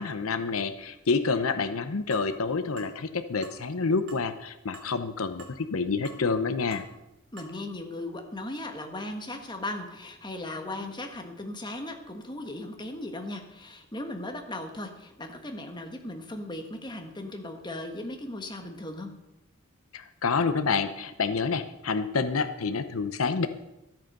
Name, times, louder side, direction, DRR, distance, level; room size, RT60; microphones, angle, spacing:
voice 1, 0.0-6.8 19.9-23.5, left 4 dB, 80° left, 11 dB, 0.8 m, -28 dB
sound 1, 2.1-2.3 2.8-2.9 3.4-3.6 4.1-4.3 4.7-4.9 5.4-5.6 6.0-6.2 6.7-6.9 7.4-7.5, right 3 dB, 60° right, 2.7 m, -47 dB
voice 2, 7.3-19.1, left 1 dB, 20° left, 5 dB, 1.4 m, -37 dB
13.0 x 9.1 x 6.6 m, 0.91 s
head